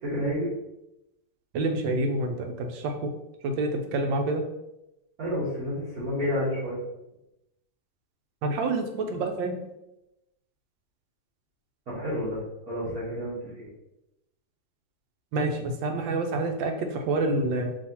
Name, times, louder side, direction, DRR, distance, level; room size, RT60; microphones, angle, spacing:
voice 1, 0.0-0.5 5.2-6.8 11.9-13.7, equal, 55° right, -11 dB, 1.7 m, -30 dB
voice 2, 1.5-3.1 3.4-4.5 8.4-9.7 15.3-17.8, right 2 dB, 80° right, 5 dB, 1.3 m, -28 dB
5.2 x 2.7 x 2.8 m, 0.90 s
omnidirectional pair, 2.0 m